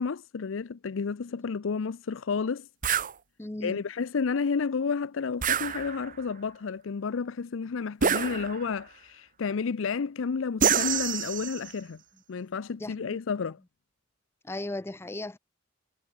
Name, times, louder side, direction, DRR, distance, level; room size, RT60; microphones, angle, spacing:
voice 1, 0.0-2.7 3.6-12.0 12.3-13.6, left 5 dB, 70° left, 0.5 m, -31 dB
sound 1, 2.8-3.1 5.4-6.2 8.0-8.8 10.6-11.7, right 7 dB, 40° right, 0.9 m, -27 dB
voice 2, 3.4-3.8 12.8-13.2 14.4-15.4, left 2 dB, 10° left, 0.5 m, -36 dB
head